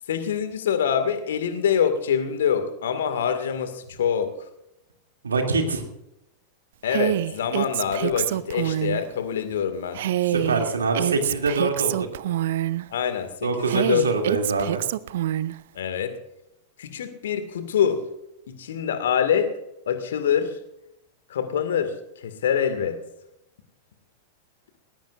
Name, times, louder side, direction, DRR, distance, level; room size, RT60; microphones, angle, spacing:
voice 1, 0.1-4.3 6.8-10.0 10.3-10.6 12.9-14.7 15.8-16.1 16.8-18.0 18.5-19.5 19.9-20.5 21.3-21.9 22.2-23.0, left 8 dB, 60° left, 10 dB, 2.0 m, -25 dB
voice 2, 5.2-5.8 10.3-12.1 13.4-14.8, right 3 dB, 70° right, 3 dB, 2.7 m, -24 dB
Female speech woman speaking, 6.9-9.0 9.9-12.8 13.7-15.6, right 13 dB, 55° right, 0.5 m, -26 dB
19.5 x 18.5 x 2.5 m, 0.84 s
figure-of-eight pair, 90°, 0 cm